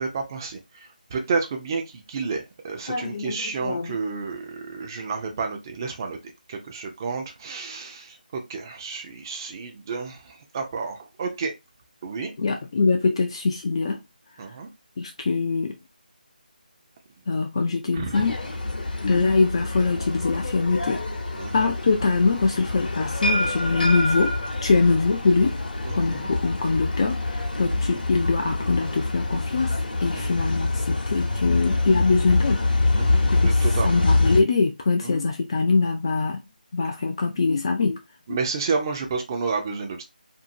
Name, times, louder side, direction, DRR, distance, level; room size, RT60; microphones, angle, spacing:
voice 1, 0.0-6.2 6.5-11.5 12.0-12.3 14.4-14.7 17.9-18.2 18.9-19.0 21.3-21.5 24.7-24.8 25.8-26.3 27.6-27.8 30.1-30.3 32.9-34.0 35.0-35.2 38.3-40.0, right 4 dB, 25° right, 0.5 m, -31 dB
voice 2, 2.9-3.9 12.4-14.0 15.0-15.8 17.3-18.4 19.0-21.0 21.5-24.3 24.6-25.6 26.0-32.6 33.3-33.5 33.8-36.4 36.7-38.0, left 4 dB, 35° left, 0.3 m, -23 dB
sound 1, 18.1-34.4, left 2 dB, 70° left, 0.8 m, -25 dB
2.7 x 2.6 x 2.6 m
figure-of-eight pair, 165°, 5 cm